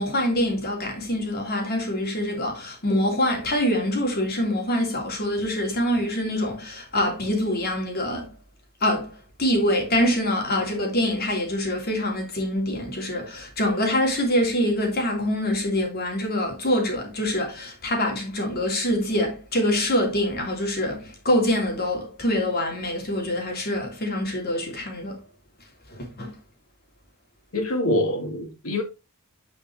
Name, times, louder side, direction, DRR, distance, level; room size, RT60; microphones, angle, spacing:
voice 1, 0.0-8.3 8.8-9.1 9.4-25.2 25.9-26.3, left 1 dB, 45° left, 2.8 m, -25 dB
voice 2, 27.5-28.8, left 1 dB, 75° left, 2.1 m, -25 dB
9.8 x 5.0 x 3.1 m
head